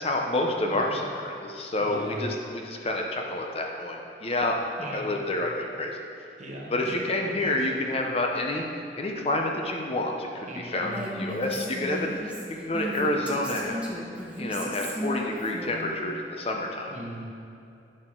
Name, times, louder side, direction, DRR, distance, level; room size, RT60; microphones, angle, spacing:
voice 1, 0.0-4.6 4.9-6.0 6.7-8.7 8.9-12.1 12.6-13.8 14.3-16.9, left 2 dB, 35° left, 1 dB, 0.6 m, -28 dB
voice 2, 1.8-2.3 4.2-4.4 4.7-5.3 6.4-6.9 7.2-7.7 10.5-11.4 16.9-17.3, right 1 dB, 40° right, -2 dB, 1.3 m, -39 dB
Female speech woman speaking, 10.8-15.9, equal, 5° right, 1.1 m, -35 dB
10.5 x 6.5 x 3.8 m, 2.6 s
head